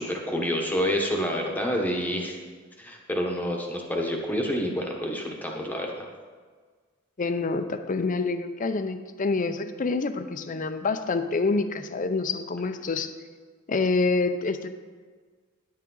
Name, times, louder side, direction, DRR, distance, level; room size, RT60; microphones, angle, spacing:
voice 1, 0.0-2.4 2.8-6.1, equal, 10° left, 0 dB, 1.1 m, -28 dB
voice 2, 7.2-13.1 13.7-14.7, left 3 dB, 40° left, 10 dB, 0.5 m, -27 dB
10.0 x 8.5 x 3.9 m, 1.5 s
head